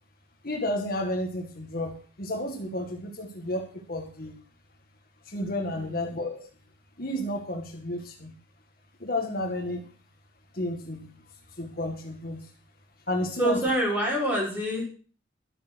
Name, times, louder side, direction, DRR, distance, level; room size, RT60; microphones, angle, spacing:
voice 1, 0.4-4.4 5.3-6.4 7.0-8.3 9.0-9.8 10.5-11.1 11.6-12.4 13.1-13.6, left 1 dB, 50° left, 3 dB, 1.9 m, -31 dB
voice 2, 13.4-14.9, right 1 dB, 10° right, -4 dB, 6.3 m, -26 dB
12.5 x 9.0 x 6.3 m, 0.41 s
head